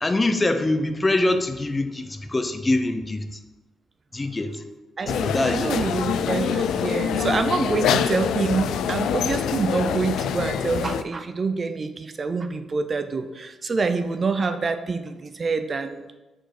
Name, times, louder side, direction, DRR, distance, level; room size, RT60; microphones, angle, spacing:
voice 1, 0.0-3.4 4.1-4.6 5.1-5.7, left 2 dB, 25° left, 8 dB, 0.6 m, -24 dB
voice 2, 5.0-16.2, right 4 dB, 40° right, 9 dB, 0.5 m, -26 dB
sound 1, 5.1-11.0, left 8 dB, 85° left, 0.3 m, -25 dB
4.9 x 4.5 x 5.9 m, 1.1 s
cardioid pair, 85°, 0 cm